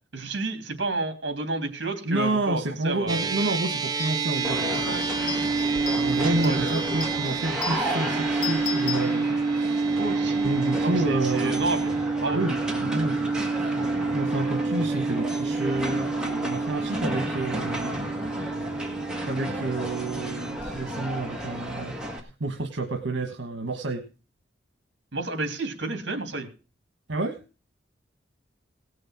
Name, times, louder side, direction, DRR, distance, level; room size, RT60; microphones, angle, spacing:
voice 1, 0.1-3.3 4.8-5.6 6.2-6.8 10.0-10.6 10.8-12.4 25.1-26.5, right 2 dB, 60° right, 6 dB, 3.0 m, -31 dB
voice 2, 2.0-5.6 5.9-10.0 10.4-11.6 12.3-13.3 13.6-13.9 14.1-18.1 19.2-24.1 27.1-27.4, right 2 dB, 80° right, 5 dB, 1.3 m, -30 dB
sound 1, 3.1-21.6, right 4 dB, 20° right, 0.5 m, -29 dB
sound 2, 3.4-3.5 3.8-9.7, left 5 dB, 45° left, 1.5 m, -37 dB
sound 3, 4.4-22.2, equal, 5° right, 1.7 m, -33 dB
17.5 x 6.5 x 6.0 m, 0.34 s
head